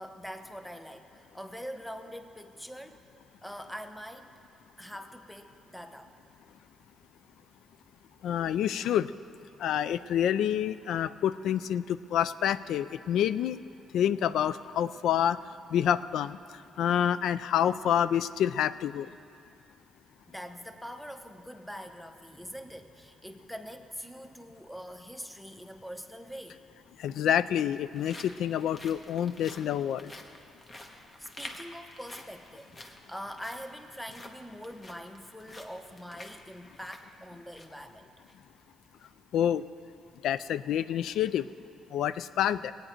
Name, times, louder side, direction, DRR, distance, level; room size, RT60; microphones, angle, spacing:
voice 1, 0.0-3.0 3.4-4.3 4.8-6.1 20.3-26.6 30.8-38.1, equal, ahead, 7 dB, 0.8 m, -43 dB
voice 2, 8.2-9.1 9.6-13.6 13.9-15.4 15.7-16.4 16.8-19.1 27.0-30.1 39.3-39.6 40.2-41.5 41.9-42.7, left 10 dB, 80° left, 15 dB, 0.3 m, -27 dB
sound 1, 27.6-37.8 38.2-38.3 38.8-39.1, left 1 dB, 30° left, 1.2 m, -50 dB
18.0 x 9.0 x 4.4 m, 2.6 s
cardioid pair, 90°, 0 cm